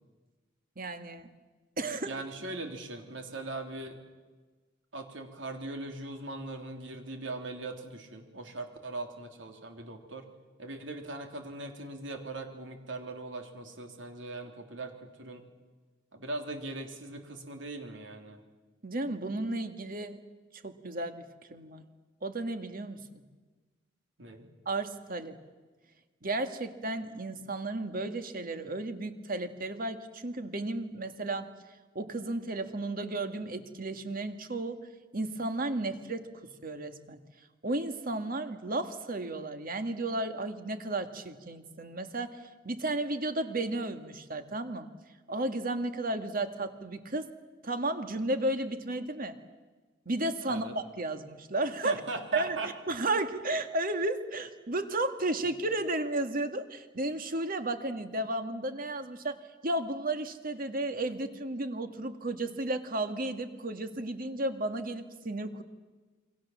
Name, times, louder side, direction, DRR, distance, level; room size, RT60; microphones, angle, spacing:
voice 1, 0.8-1.3 1.8-2.1 18.8-20.2 20.6-21.2 21.5-21.9 22.2-23.2 24.7-25.4 26.2-31.5 32.0-34.8 35.1-36.3 36.6-37.2 37.6-44.9 45.3-47.3 47.6-49.4 50.1-52.0 52.3-65.6, right 2 dB, 50° right, 8 dB, 2.0 m, -33 dB
voice 2, 2.0-4.0 4.9-10.3 10.6-15.4 16.1-18.4 24.2-24.5 50.4-50.7 51.8-52.7, right 2 dB, 75° right, 5 dB, 3.5 m, -40 dB
29.0 x 23.0 x 7.5 m, 1.3 s
head